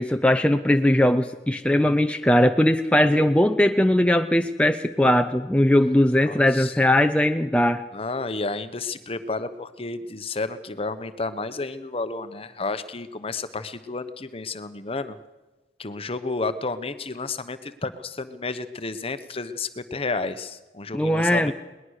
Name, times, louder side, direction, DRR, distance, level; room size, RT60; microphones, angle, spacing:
voice 1, 0.0-7.8 20.9-21.5, left 1 dB, 5° left, 7 dB, 0.7 m, -20 dB
voice 2, 6.3-6.7 7.9-15.2 15.8-21.5, left 3 dB, 35° left, 11 dB, 1.1 m, -31 dB
21.0 x 20.0 x 6.5 m, 1.1 s
head